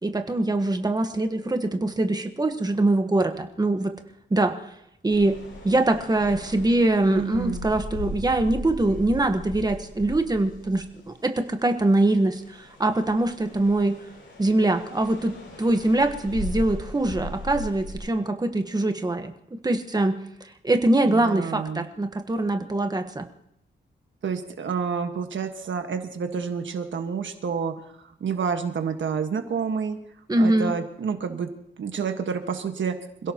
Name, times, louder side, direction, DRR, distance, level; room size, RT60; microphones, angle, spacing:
voice 1, 0.0-3.9 4.3-4.5 5.0-5.4 5.6-14.0 14.4-19.3 19.6-20.1 20.6-23.3 30.3-30.7, right 2 dB, 20° right, 6 dB, 1.3 m, -23 dB
sound 1, 5.1-11.3 11.8-18.0, left 1 dB, 90° left, 6.4 m, -38 dB
voice 2, 7.1-7.7 21.0-21.9 24.2-27.8 28.2-30.0 30.4-31.5 31.8-33.3, right 6 dB, 85° right, 6 dB, 1.5 m, -29 dB
27.0 x 16.5 x 3.0 m, 0.79 s
wide cardioid pair, 140°, 19 cm